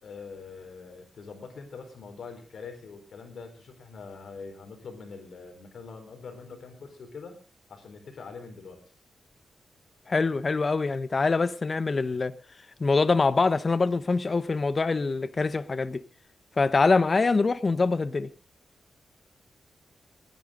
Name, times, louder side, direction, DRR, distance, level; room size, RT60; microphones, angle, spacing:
voice 1, 0.0-7.4 7.7-8.8, left 4 dB, 75° left, 4.3 m, -43 dB
voice 2, 10.1-12.3 12.8-16.0 16.6-18.3, left 3 dB, 40° left, 0.8 m, -24 dB
20.0 x 10.5 x 3.8 m
cardioid pair, 95°, 0 cm